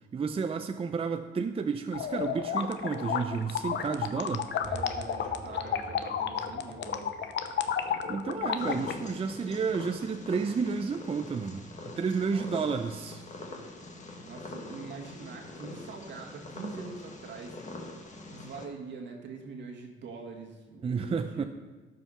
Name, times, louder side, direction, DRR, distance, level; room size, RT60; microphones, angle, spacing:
voice 1, 0.1-4.5 8.1-13.2 20.8-21.4, right 5 dB, 30° right, 7 dB, 0.5 m, -31 dB
sound 1, 1.9-8.9, left 8 dB, 65° left, 0.8 m, -32 dB
sound 2, 4.6-10.2, right 2 dB, 5° right, 0.9 m, -48 dB
voice 2, 4.7-7.2 12.3-12.5 14.2-17.9 18.3-21.5, right 4 dB, 70° right, 1 dB, 1.9 m, -43 dB
Purr, 8.6-18.7, left 2 dB, 35° left, 1.6 m, -44 dB
12.5 x 5.8 x 5.6 m, 1.2 s
cardioid pair, 90°, 20 cm